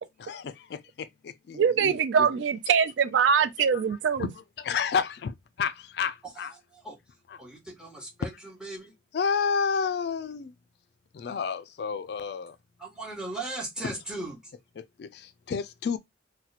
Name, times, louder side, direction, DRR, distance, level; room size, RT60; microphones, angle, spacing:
voice 1, 0.2-2.3 3.7-3.8 4.2-6.5 7.3-7.4 9.1-10.5 11.1-12.6 13.8-13.9 14.8-16.0, left 6 dB, 60° left, 0.3 m, -31 dB
voice 2, 1.5-4.3, right 7 dB, 75° right, 0.3 m, -23 dB
voice 3, 7.4-8.9 12.8-14.5, right 2 dB, 5° right, 1.0 m, -38 dB
2.9 x 2.1 x 4.0 m
head